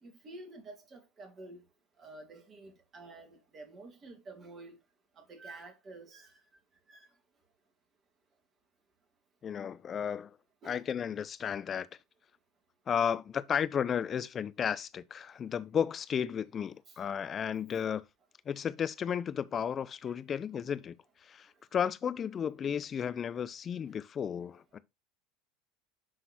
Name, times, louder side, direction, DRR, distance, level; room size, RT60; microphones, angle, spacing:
voice 1, 0.0-1.7 2.0-4.8 5.2-6.4 6.9-7.1 10.6-10.9 16.9-17.0 20.1-20.2 22.9-23.1, right 2 dB, 35° right, 2.5 m, -50 dB
voice 2, 9.4-10.4 10.6-11.9 12.9-18.0 18.5-20.9 21.2-24.8, left 8 dB, 35° left, 0.5 m, -33 dB
11.0 x 3.9 x 2.9 m
hypercardioid pair, 75°, 0 cm